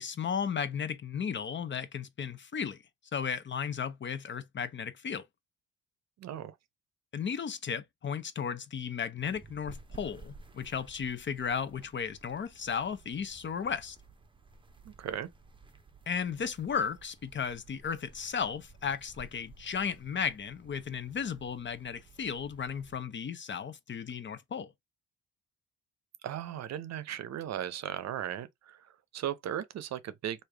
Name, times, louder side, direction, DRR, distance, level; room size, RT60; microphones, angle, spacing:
voice 1, 0.0-2.8 3.1-5.2 7.1-14.0 16.1-24.7, left 7 dB, 40° left, 0.7 m, -35 dB
voice 2, 6.2-6.6 14.8-15.3 26.2-30.4, right 10 dB, 60° right, 0.6 m, -37 dB
sound 1, 9.2-23.0, right 3 dB, 15° right, 0.7 m, -54 dB
3.3 x 2.7 x 3.3 m
cardioid pair, 90°, 30 cm